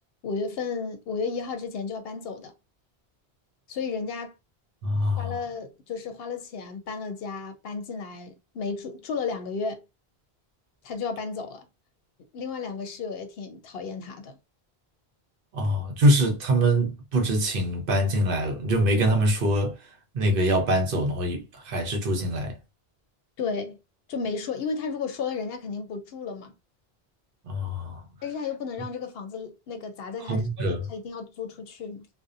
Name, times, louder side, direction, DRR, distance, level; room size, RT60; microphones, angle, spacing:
voice 1, 0.2-2.5 3.7-4.3 5.2-9.8 10.8-11.7 12.3-14.4 23.4-23.8 24.1-26.5 28.2-32.1, left 5 dB, 70° left, 0.7 m, -33 dB
voice 2, 4.8-5.4 15.5-19.8 20.1-22.6 27.5-28.0 30.3-30.9, right 1 dB, 60° right, 0.8 m, -24 dB
2.6 x 2.1 x 2.4 m
omnidirectional pair, 1.1 m